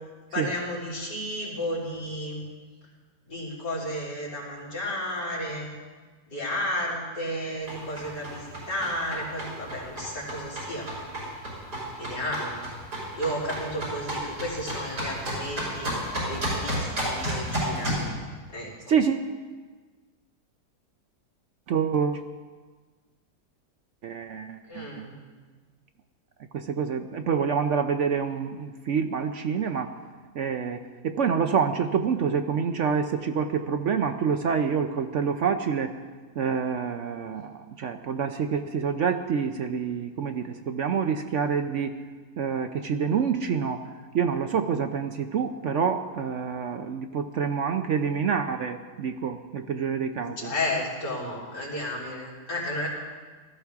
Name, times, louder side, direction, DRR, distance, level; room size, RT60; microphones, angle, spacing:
voice 1, 0.3-2.4 3.3-5.7 6.3-11.0 12.0-12.6 13.1-15.9 16.3-18.1 18.5-19.0 24.7-25.1 50.4-52.9, left 1 dB, 90° left, -6 dB, 4.5 m, -32 dB
sound 1, 7.6-18.1, equal, 90° right, 6.4 m, -32 dB
voice 2, 18.9-19.3 21.7-22.2 24.0-25.1 26.5-29.9 30.3-35.9 36.4-42.0 42.4-43.8 44.1-50.5, right 6 dB, 60° right, 7 dB, 0.8 m, -27 dB
19.0 x 14.0 x 3.5 m, 1.4 s
omnidirectional pair, 1.7 m